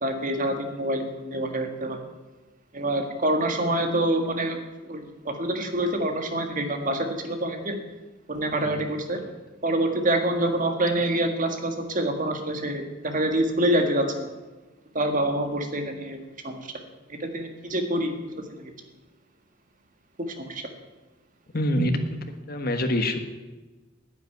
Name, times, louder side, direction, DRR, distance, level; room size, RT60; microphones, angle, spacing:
voice 1, 0.0-2.0 2.7-7.8 8.3-9.2 9.6-14.3 14.9-16.2 16.4-16.7 17.2-18.7 20.4-20.6 21.8-21.9, right 1 dB, 45° right, 5 dB, 1.7 m, -26 dB
voice 2, 8.5-9.4 21.5-22.0 22.5-23.2, left 1 dB, 50° left, 7 dB, 1.4 m, -27 dB
10.0 x 8.3 x 9.2 m, 1.2 s
head